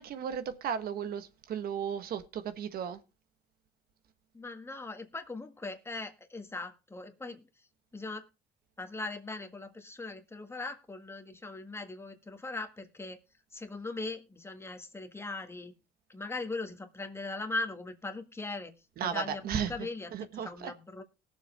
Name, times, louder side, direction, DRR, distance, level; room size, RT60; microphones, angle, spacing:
voice 1, 0.0-3.0 19.0-19.7 20.1-20.7, right 8 dB, 65° right, 1.2 m, -35 dB
voice 2, 4.3-7.4 7.9-8.2 8.8-13.2 13.5-15.7 16.1-18.7 19.0-21.0, left 3 dB, 15° left, 1.6 m, -39 dB
19.5 x 7.1 x 3.3 m
cardioid pair, 110°, 17 cm